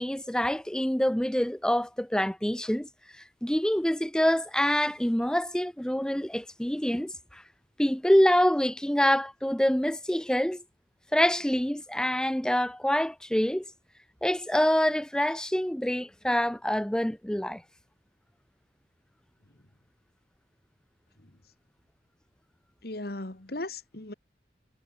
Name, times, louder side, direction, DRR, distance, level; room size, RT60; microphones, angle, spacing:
voice 1, 0.0-2.9 3.4-7.4 7.8-10.6 11.1-13.6 14.2-17.6, equal, 5° left, 0.5 m, -26 dB
voice 2, 22.8-24.1, left 2 dB, 55° left, 1.7 m, -37 dB
head